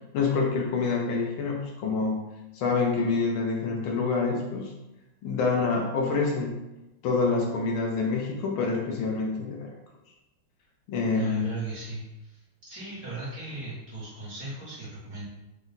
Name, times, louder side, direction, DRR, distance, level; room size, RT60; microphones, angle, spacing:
voice 1, 0.1-2.2 2.5-4.7 5.2-6.6 7.0-9.7 10.9-11.5, left 4 dB, 75° left, 0 dB, 1.5 m, -27 dB
voice 2, 11.1-12.4 12.7-15.2, right 3 dB, 50° right, -7 dB, 1.4 m, -37 dB
4.1 x 2.2 x 3.9 m, 0.97 s
omnidirectional pair, 2.4 m